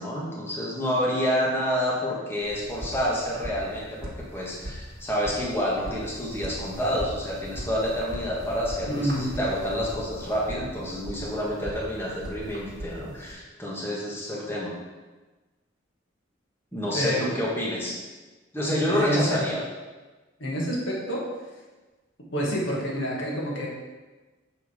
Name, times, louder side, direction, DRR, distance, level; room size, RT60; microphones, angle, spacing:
voice 1, 0.0-14.7 16.7-18.0 18.5-19.6, equal, 10° left, -5 dB, 1.4 m, -28 dB
sound 1, 2.4-13.3, equal, 55° right, 1.6 m, -39 dB
voice 2, 8.9-9.4 16.9-17.3 18.9-19.5 20.4-21.3 22.3-23.7, equal, 80° left, -3 dB, 1.7 m, -28 dB
6.9 x 3.9 x 4.9 m, 1.2 s
head